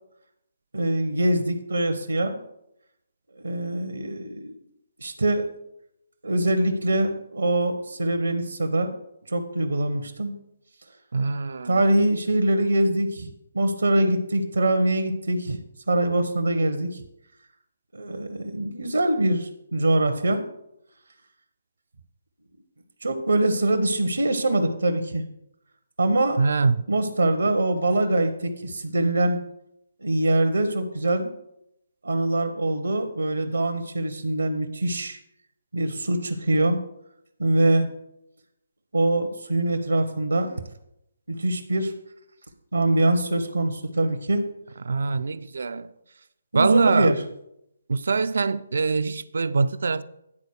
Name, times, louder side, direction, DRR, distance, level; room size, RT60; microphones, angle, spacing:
voice 1, 0.7-2.4 3.4-4.6 5.0-5.5 6.2-8.9 9.3-10.4 11.6-13.3 13.5-15.6 15.9-17.0 17.9-20.4 23.0-25.2 26.0-26.4 26.9-29.4 30.0-31.3 32.0-35.2 35.7-36.8 37.4-37.9 38.9-40.5 41.3-41.9 42.7-44.5 46.5-47.1, right 1 dB, 75° right, 7 dB, 0.9 m, -23 dB
voice 2, 11.1-11.8 26.4-26.8 44.9-45.9 46.5-47.1 47.9-50.0, right 4 dB, 60° right, 14 dB, 0.4 m, -23 dB
9.9 x 4.1 x 6.3 m, 0.80 s
figure-of-eight pair, 140°, 0 cm